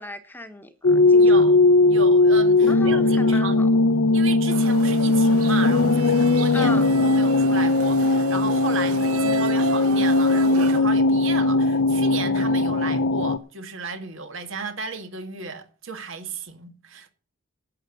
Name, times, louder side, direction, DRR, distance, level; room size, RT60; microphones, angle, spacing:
voice 1, 0.0-1.4 2.7-3.7 6.5-6.9, left 2 dB, 10° left, 1.2 m, -36 dB
sound 1, 0.8-13.4, left 2 dB, 65° left, 0.7 m, -19 dB
voice 2, 1.2-1.6 1.9-3.6 4.1-17.1, right 4 dB, 60° right, 1.9 m, -34 dB
sound 2, 4.5-10.8, right 5 dB, 90° right, 0.8 m, -33 dB
11.5 x 8.1 x 7.9 m
head